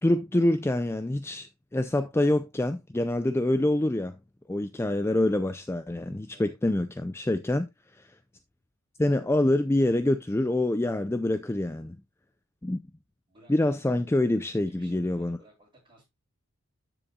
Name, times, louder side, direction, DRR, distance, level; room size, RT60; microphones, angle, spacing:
voice 1, 0.0-4.2 4.5-7.7 7.9-8.2 9.0-12.0 12.6-12.8 13.5-15.4, left 1 dB, 10° left, 0.4 m, -26 dB
voice 2, 13.3-14.0 14.7-16.0, right 2 dB, 20° right, 7.0 m, -58 dB
12.5 x 7.0 x 2.3 m
head